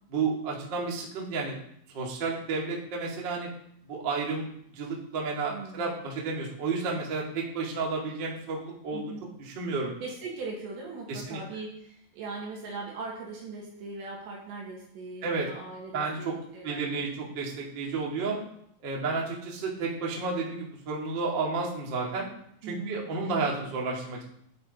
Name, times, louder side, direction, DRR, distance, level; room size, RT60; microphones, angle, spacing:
voice 1, 0.1-1.6 1.9-3.5 3.9-4.5 4.7-9.0 9.4-9.9 11.1-11.4 15.2-15.5 15.9-16.3 16.6-18.4 18.8-22.3 22.6-24.2, right 4 dB, 85° right, -2 dB, 1.0 m, -31 dB
voice 2, 5.5-6.1 8.9-9.2 10.0-17.1 22.6-23.1, right 3 dB, 65° right, -2 dB, 3.7 m, -40 dB
10.5 x 9.2 x 4.1 m, 0.70 s
omnidirectional pair, 5.9 m